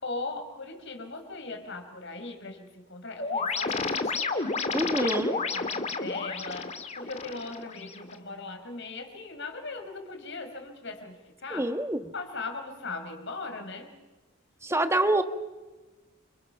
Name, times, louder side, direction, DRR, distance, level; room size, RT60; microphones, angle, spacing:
voice 1, 0.0-3.9 4.6-11.7 12.1-13.9, left 3 dB, 60° left, 5 dB, 5.2 m, -39 dB
sound 1, 3.2-8.2, left 4 dB, 35° left, 2.0 m, -31 dB
voice 2, 4.7-5.4 11.5-12.0 14.6-15.2, right 1 dB, 15° right, 8 dB, 1.5 m, -26 dB
29.0 x 27.5 x 5.9 m, 1.2 s
head